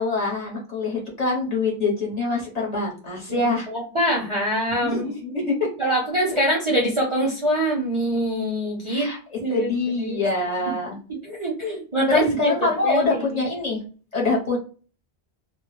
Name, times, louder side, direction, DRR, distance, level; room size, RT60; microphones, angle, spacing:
voice 1, 0.0-3.7 4.8-5.7 8.9-11.0 12.1-13.8 14.1-14.6, left 3 dB, 45° left, -3 dB, 0.8 m, -25 dB
voice 2, 3.3-5.1 5.8-9.1 9.4-10.2 11.2-12.5 12.8-13.4, right 1 dB, 40° right, -3 dB, 0.5 m, -24 dB
2.0 x 2.0 x 3.0 m, 0.37 s
omnidirectional pair, 1.0 m